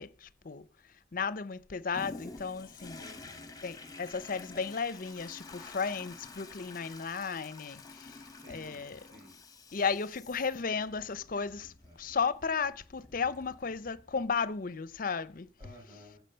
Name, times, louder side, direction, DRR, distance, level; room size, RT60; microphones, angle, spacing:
voice 1, 0.0-3.0 3.6-9.0 9.7-15.5, left 5 dB, 50° left, 0.6 m, -34 dB
Toilet flush, 1.9-14.3 14.9-15.0, left 3 dB, 20° left, 1.2 m, -50 dB
voice 2, 2.9-3.5 8.0-9.4 11.8-12.1 15.6-16.2, equal, 20° right, 7.7 m, -55 dB
14.5 x 7.3 x 5.6 m
head